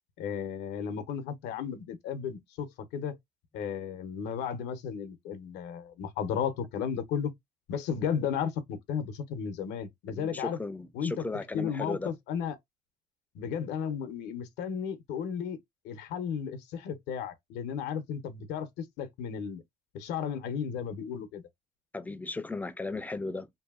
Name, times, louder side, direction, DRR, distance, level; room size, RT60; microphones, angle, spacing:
voice 1, 0.2-3.2 3.5-7.3 7.7-10.6 10.9-11.2 11.5-12.6 13.3-15.6 15.8-19.6 19.9-21.4, left 7 dB, 90° left, 0.7 m, -34 dB
voice 2, 10.1-12.1 21.9-23.5, left 3 dB, 10° left, 0.4 m, -36 dB
2.7 x 2.7 x 2.3 m
cardioid pair, 110°, 17 cm